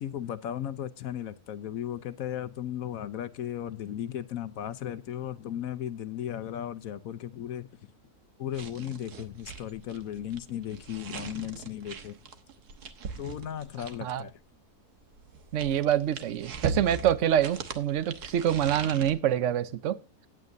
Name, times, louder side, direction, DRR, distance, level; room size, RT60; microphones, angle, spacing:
voice 1, 0.0-7.9 8.4-12.2 13.2-14.3, left 10 dB, 65° left, 1.1 m, -36 dB
sound 1, 8.5-14.3 15.1-19.1, right 5 dB, 80° right, 1.7 m, -40 dB
voice 2, 15.5-20.0, right 10 dB, 60° right, 1.0 m, -26 dB
17.0 x 9.1 x 2.6 m
omnidirectional pair, 1.6 m